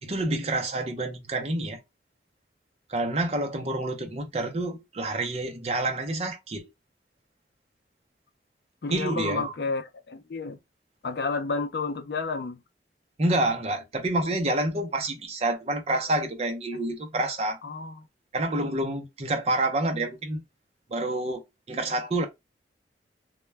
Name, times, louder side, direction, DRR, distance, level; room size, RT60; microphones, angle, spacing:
voice 1, 0.0-1.8 2.9-6.7 8.9-9.5 13.2-17.6 18.3-20.4 20.9-21.4 21.7-22.3, right 2 dB, 35° right, 0.5 m, -28 dB
voice 2, 8.8-10.6 11.0-12.6 17.6-17.9, left 4 dB, 60° left, 0.4 m, -31 dB
2.1 x 2.1 x 3.2 m
head